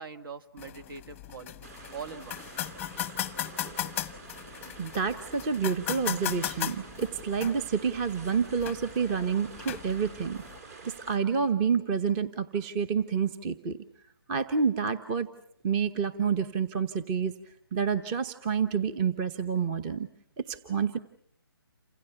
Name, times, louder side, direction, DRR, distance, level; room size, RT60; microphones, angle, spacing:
voice 1, 0.0-2.4, right 5 dB, 60° right, 9 dB, 1.9 m, -43 dB
sound 1, 0.6-10.6, left 11 dB, 10° left, 0.9 m, -38 dB
sound 2, 1.6-11.2, right 4 dB, 40° right, 4.6 m, -47 dB
voice 2, 4.8-10.4 10.8-13.8 14.3-15.3 15.6-17.3 17.7-20.1 20.4-21.0, right 6 dB, 20° right, 11 dB, 1.0 m, -28 dB
28.5 x 26.5 x 5.9 m, 0.68 s
hypercardioid pair, 155°, 13 cm